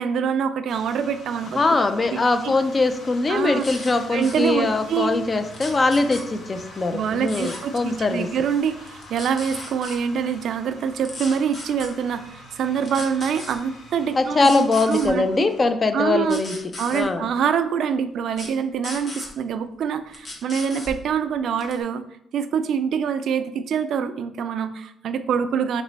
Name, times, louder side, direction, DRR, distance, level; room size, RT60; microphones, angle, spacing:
voice 1, 0.0-1.6 2.1-2.2 2.4-2.5 3.3-3.7 4.1-5.1 6.9-15.5 15.9-16.4 16.8-22.0 22.3-25.8, right 7 dB, 70° right, 11 dB, 0.3 m, -25 dB
sound 1, 0.7-15.7, left 1 dB, 75° left, 1.1 m, -45 dB
voice 2, 1.5-8.3 14.1-16.5 16.9-17.2, left 3 dB, 30° left, 8 dB, 0.4 m, -22 dB
sound 2, 3.6-3.9 4.2-4.5 5.5-6.2 7.3-7.6 8.9-10.0 11.0-11.9 12.8-13.5 14.4-15.1 16.3-17.0 18.3-18.5 18.8-19.3 20.1-20.9 21.6-21.8, left 2 dB, 50° left, 1.1 m, -36 dB
3.0 x 3.0 x 4.0 m, 0.75 s
cardioid pair, 90°, 0 cm